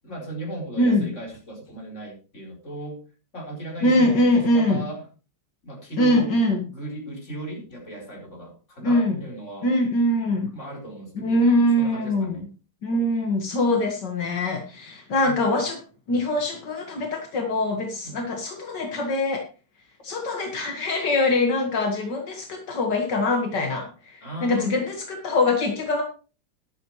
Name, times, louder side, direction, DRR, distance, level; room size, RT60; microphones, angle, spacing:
voice 1, 0.0-3.0 3.3-5.1 5.6-6.3 6.7-9.7 10.5-11.4 11.8-12.5 15.2-15.4 18.0-18.2 24.2-24.8, right 2 dB, 40° left, -1 dB, 4.4 m, -36 dB
voice 2, 0.8-1.1 3.8-4.8 6.0-6.6 8.8-9.2 9.6-10.5 11.2-12.4 12.8-15.8 16.1-19.4 20.0-26.0, left 1 dB, 80° left, 2 dB, 2.3 m, -23 dB
13.5 x 11.0 x 3.1 m, 0.35 s
omnidirectional pair, 1.9 m